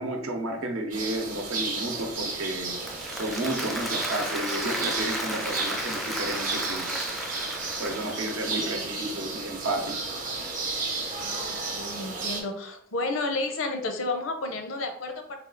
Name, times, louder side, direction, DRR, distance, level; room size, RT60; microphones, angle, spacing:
voice 1, 0.0-2.7 3.1-6.9 7.8-9.9, right 1 dB, 80° right, 2 dB, 0.7 m, -32 dB
sound 1, 0.9-12.4, right 3 dB, 40° right, 0.8 m, -33 dB
Applause, 2.6-8.8, equal, ahead, 0.3 m, -34 dB
voice 2, 7.9-9.0 11.2-15.4, left 2 dB, 70° left, 5 dB, 0.6 m, -32 dB
3.5 x 2.4 x 3.8 m, 0.72 s
head